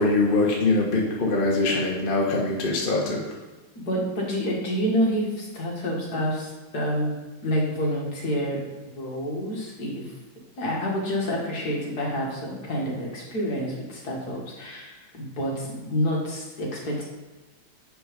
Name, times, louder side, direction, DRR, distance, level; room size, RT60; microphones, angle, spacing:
voice 1, 0.0-3.2, left 2 dB, 30° left, -2 dB, 1.1 m, -23 dB
voice 2, 3.8-7.1 7.4-8.6 8.9-10.1 10.6-17.0, equal, 50° left, -2 dB, 2.2 m, -28 dB
7.1 x 6.0 x 5.2 m, 1.2 s
omnidirectional pair, 2.3 m